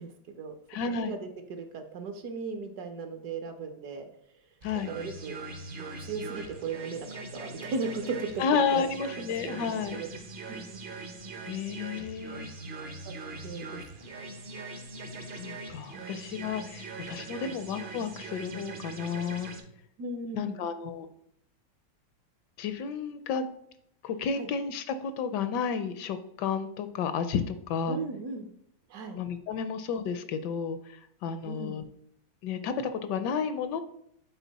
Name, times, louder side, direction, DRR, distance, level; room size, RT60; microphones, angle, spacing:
voice 1, 0.0-4.1 4.9-5.4 5.8-8.4 8.7-8.8 9.4-10.1 10.5-10.8 12.0-12.4 13.0-13.1 13.4-13.8 15.9-16.0 17.4-17.5 20.0-20.6 24.4-24.5 27.9-28.5 28.9-29.2 31.4-31.8, right 4 dB, 65° right, 6 dB, 1.1 m, -37 dB
voice 2, 0.7-1.1 4.6-4.9 8.4-10.0 11.5-12.5 15.4-19.5 20.3-21.1 22.6-23.5 24.0-28.0 29.1-30.8 31.2-31.8 32.4-33.8, left 6 dB, 75° left, 11 dB, 1.1 m, -31 dB
sound 1, 4.6-19.6, right 3 dB, 50° right, 0.6 m, -42 dB
8.2 x 4.0 x 4.0 m, 0.72 s
omnidirectional pair, 2.0 m